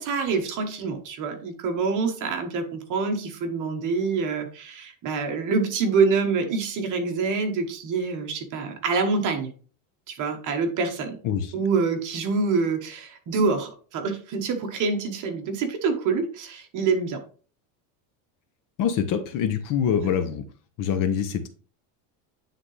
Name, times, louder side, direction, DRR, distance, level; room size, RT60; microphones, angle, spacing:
voice 1, 0.0-9.5 10.1-11.2 11.5-17.2 20.0-20.1, right 4 dB, 40° right, 4 dB, 1.3 m, -26 dB
voice 2, 11.2-11.5 18.8-20.4 20.8-21.5, left 8 dB, 40° left, 9 dB, 0.8 m, -25 dB
9.6 x 3.8 x 3.3 m, 0.40 s
cardioid pair, 155°, 48 cm